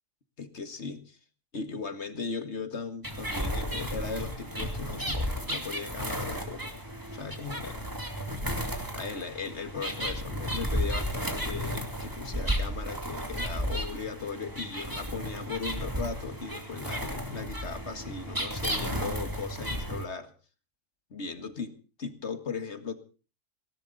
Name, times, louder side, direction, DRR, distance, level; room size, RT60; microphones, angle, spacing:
voice 1, 0.4-1.2 1.5-6.7 7.1-7.8 8.9-20.3 21.1-22.9, left 5 dB, 60° left, 9 dB, 2.0 m, -38 dB
sound 1, 3.0-20.0, equal, 15° right, 2.6 m, -33 dB
19.0 x 18.0 x 4.1 m, 0.37 s
omnidirectional pair, 1.3 m